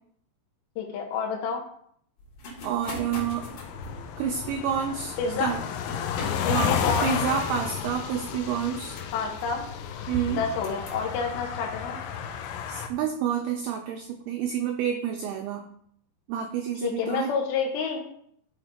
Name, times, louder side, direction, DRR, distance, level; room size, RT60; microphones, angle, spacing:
voice 1, 0.8-1.6 5.2-5.6 6.4-7.1 9.1-9.7 10.3-12.0 16.8-18.0, left 5 dB, 75° left, 0 dB, 2.5 m, -29 dB
sound 1, 2.2-11.1, left 1 dB, 50° left, 3.3 m, -43 dB
voice 2, 2.6-3.5 4.2-5.6 6.4-9.0 10.1-10.4 12.7-15.7 16.3-17.3, right 8 dB, 85° right, 4 dB, 2.2 m, -29 dB
sound 2, 2.9-12.9, left 8 dB, 90° left, 3.0 m, -32 dB
Bowed string instrument, 10.1-13.5, right 2 dB, 25° left, 1.7 m, -43 dB
12.5 x 4.2 x 5.1 m, 0.67 s
omnidirectional pair, 5.3 m